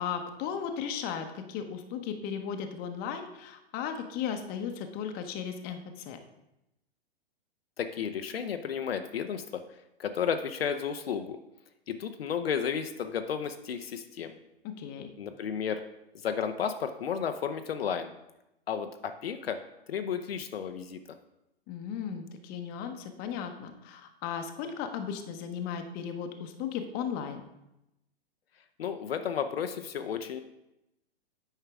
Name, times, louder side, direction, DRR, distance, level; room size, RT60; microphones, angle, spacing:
voice 1, 0.0-6.2 14.8-15.1 21.7-27.4, left 7 dB, 30° left, 6 dB, 0.9 m, -36 dB
voice 2, 7.8-9.6 10.0-11.4 11.9-14.3 15.2-15.8 16.2-18.1 18.7-19.6 19.9-21.0 28.8-30.4, left 7 dB, 75° left, 7 dB, 0.7 m, -32 dB
9.1 x 5.6 x 3.6 m, 0.89 s
hypercardioid pair, 115°, 30 cm